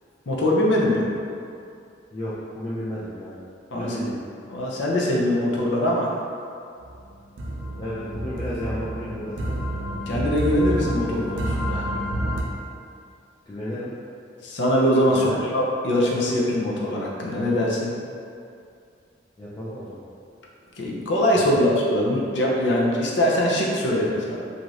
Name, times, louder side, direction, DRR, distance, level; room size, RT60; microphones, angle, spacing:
voice 1, 0.3-1.1 3.7-4.0 4.5-6.1 10.1-11.9 14.4-17.9 20.8-24.4, left 1 dB, 70° left, -3 dB, 0.5 m, -22 dB
voice 2, 2.1-3.4 3.8-4.2 7.8-9.6 13.5-13.9 15.1-15.4 19.4-20.0 21.3-21.6, equal, 20° left, -10 dB, 0.3 m, -32 dB
sound 1, 6.8-12.4, right 1 dB, 80° right, 0.4 m, -29 dB
2.6 x 2.4 x 3.1 m, 2.4 s
head